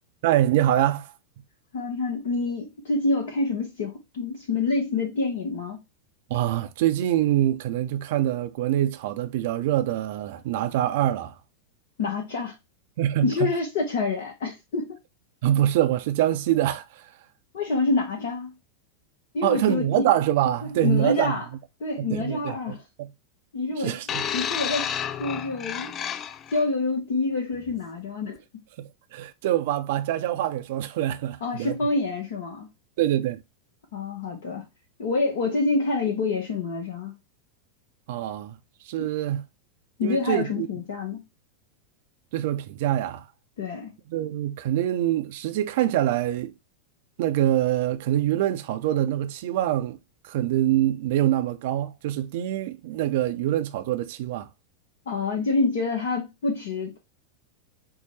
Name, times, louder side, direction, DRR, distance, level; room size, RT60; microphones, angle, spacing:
voice 1, 0.2-1.1 6.3-11.4 13.0-13.5 15.4-17.1 19.4-21.4 22.0-23.1 23.8-24.2 28.8-31.8 33.0-33.4 38.1-38.6 38.8-39.4 40.0-40.7 42.3-43.2 44.1-46.5 47.2-50.0 50.2-54.5, right 12 dB, 50° right, 0.5 m, -25 dB
voice 2, 1.7-5.8 12.0-12.5 13.2-15.0 17.5-18.5 19.3-20.1 20.8-21.4 21.8-22.8 23.5-23.9 24.3-24.9 25.2-25.9 26.3-28.4 31.4-32.7 33.9-34.7 35.0-37.1 39.0-39.1 40.0-41.2 43.6-43.9 55.1-57.0, left 3 dB, 55° left, 0.7 m, -27 dB
sound 1, 24.1-26.6 27.6-27.7, left 8 dB, 25° left, 0.3 m, -31 dB
4.6 x 2.0 x 4.0 m
figure-of-eight pair, 90°, 0 cm